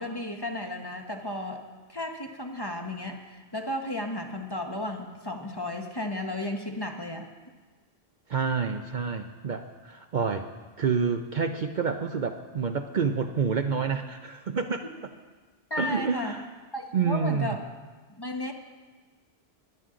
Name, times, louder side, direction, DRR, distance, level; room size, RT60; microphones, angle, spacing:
voice 1, 0.0-1.6 1.9-7.3 15.7-16.3 16.7-17.6 18.2-18.5, left 1 dB, 25° left, 3 dB, 1.0 m, -34 dB
voice 2, 8.3-10.5 10.8-14.8 15.8-16.5 16.9-17.6, right 5 dB, 50° right, 6 dB, 0.7 m, -28 dB
20.0 x 10.5 x 3.8 m, 1.4 s
omnidirectional pair, 1.1 m